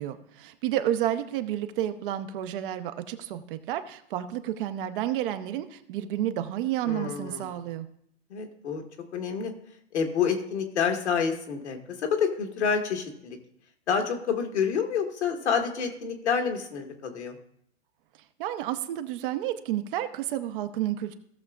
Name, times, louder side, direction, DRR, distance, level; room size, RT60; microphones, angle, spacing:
voice 1, 0.0-7.9 18.4-21.1, right 12 dB, 50° right, 9 dB, 0.9 m, -30 dB
voice 2, 6.8-7.5 8.3-8.8 9.1-9.5 9.9-13.4 13.9-17.4, left 6 dB, 70° left, 3 dB, 1.8 m, -28 dB
17.0 x 6.7 x 2.4 m, 0.71 s
figure-of-eight pair, 105°, 35 cm